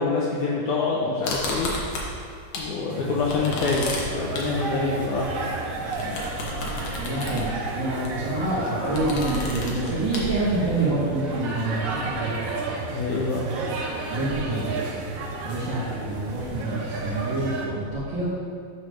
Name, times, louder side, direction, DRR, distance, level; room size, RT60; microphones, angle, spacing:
voice 1, 0.0-1.7 2.6-3.9 4.1-5.3 12.9-13.4, left 4 dB, 80° left, -3 dB, 1.7 m, -26 dB
sound 1, 1.2-2.7 3.0-10.9, left 2 dB, 65° left, 2.2 m, -34 dB
sound 2, 2.9-17.7, right 2 dB, 65° right, 2.3 m, -32 dB
voice 2, 6.9-12.3 14.1-14.7 15.4-18.3, right 2 dB, 80° right, -10 dB, 1.0 m, -27 dB
9.5 x 3.4 x 6.2 m, 2.3 s
omnidirectional pair, 4.3 m